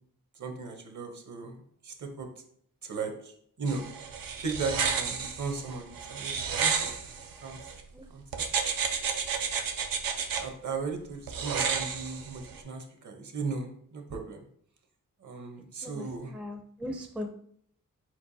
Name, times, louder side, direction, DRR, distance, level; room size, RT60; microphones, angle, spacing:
voice 1, 0.4-2.3 2.8-3.3 3.6-3.8 4.4-6.9 7.4-7.6 8.1-8.2 8.8-8.9 10.4-14.4 15.2-16.3, right 4 dB, 60° right, 4 dB, 0.9 m, -36 dB
sound 1, 3.7-7.8 8.3-10.4 11.3-12.6, right 6 dB, 85° right, 0.6 m, -31 dB
voice 2, 15.8-17.3, left 1 dB, 5° right, 4 dB, 0.4 m, -39 dB
4.5 x 4.2 x 2.7 m, 0.63 s
wide cardioid pair, 100°, 33 cm